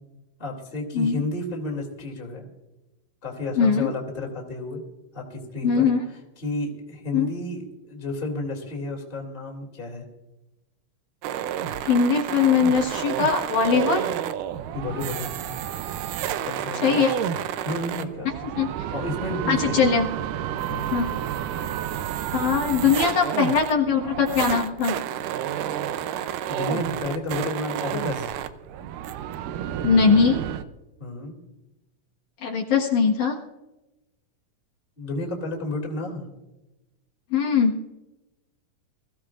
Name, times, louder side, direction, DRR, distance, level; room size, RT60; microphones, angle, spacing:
voice 1, 0.4-2.5 3.2-4.8 5.1-5.9 6.4-10.0 14.7-15.3 16.4-17.0 17.6-18.3 18.9-19.9 20.7-20.9 26.5-28.3 31.0-31.4 35.0-36.3, left 2 dB, 15° left, 0 dB, 2.5 m, -31 dB
voice 2, 3.6-3.9 5.6-6.0 7.1-7.3 11.8-14.0 16.8-17.1 18.6-18.7 19.5-20.1 20.9-21.2 22.3-25.0 29.8-30.4 32.4-33.4 37.3-37.8, left 6 dB, 65° left, -1 dB, 2.8 m, -21 dB
sound 1, 11.2-30.6, right 10 dB, 80° right, 2.2 m, -30 dB
22.5 x 15.5 x 2.5 m, 1.0 s
omnidirectional pair, 3.9 m